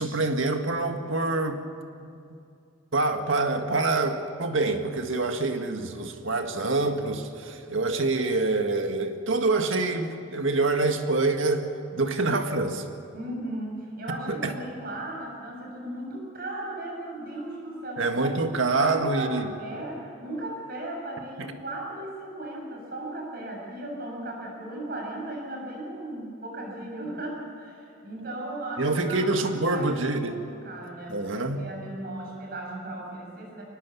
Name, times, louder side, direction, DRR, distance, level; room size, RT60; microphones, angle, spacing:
voice 1, 0.0-1.6 2.0-2.1 2.9-11.7 11.9-12.9 14.3-14.5 18.0-19.5 21.4-21.5 28.8-30.4 31.1-31.6, right 3 dB, 80° right, 6 dB, 1.7 m, -26 dB
voice 2, 13.1-18.3 18.6-33.6, right 1 dB, 50° right, -1 dB, 6.9 m, -36 dB
23.5 x 19.5 x 7.2 m, 2.5 s
head